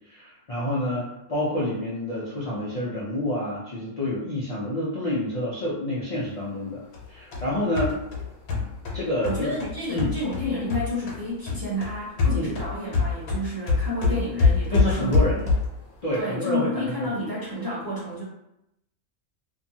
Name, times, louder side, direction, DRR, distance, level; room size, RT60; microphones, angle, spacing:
voice 1, 0.0-6.8 7.1-8.0 8.9-10.1 12.3-12.5 14.7-15.4 16.0-17.2, left 1 dB, 65° left, -8 dB, 0.3 m, -28 dB
sound 1, 6.9-11.2 11.5-15.8, left 4 dB, 85° left, 1.1 m, -25 dB
voice 2, 9.2-15.4 16.1-18.2, left 1 dB, 20° right, -8 dB, 0.6 m, -30 dB
2.7 x 2.3 x 2.7 m, 0.86 s
omnidirectional pair, 1.5 m